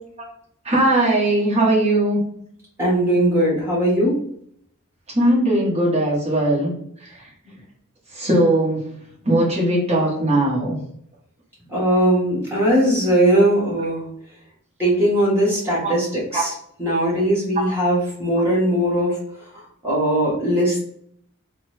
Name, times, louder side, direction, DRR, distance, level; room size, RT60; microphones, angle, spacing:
voice 1, 0.6-2.2 5.1-6.7 7.0-7.1 8.1-8.9 9.2-10.8 15.8-15.9 16.3-16.4 17.6-17.7, right 1 dB, 30° right, -5 dB, 1.1 m, -19 dB
voice 2, 2.8-4.2 11.7-14.0 14.8-16.5 16.8-19.2 19.8-20.8, right 1 dB, 10° right, -8 dB, 1.3 m, -19 dB
3.2 x 2.1 x 3.1 m, 0.67 s
head